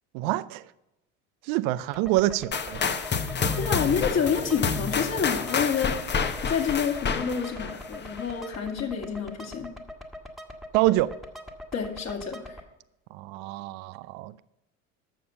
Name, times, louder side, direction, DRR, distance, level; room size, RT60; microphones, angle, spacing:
voice 1, 0.1-0.6 1.4-2.8 10.7-11.1 13.1-14.4, right 16 dB, 60° right, 0.6 m, -26 dB
sound 1, 1.9-12.6, left 1 dB, ahead, 1.6 m, -43 dB
sound 2, 2.5-8.4, left 5 dB, 25° left, 1.1 m, -29 dB
voice 2, 3.6-6.0 6.4-9.7 11.7-12.6, left 6 dB, 45° left, 2.4 m, -28 dB
12.5 x 6.9 x 5.7 m
hypercardioid pair, 75°, 38 cm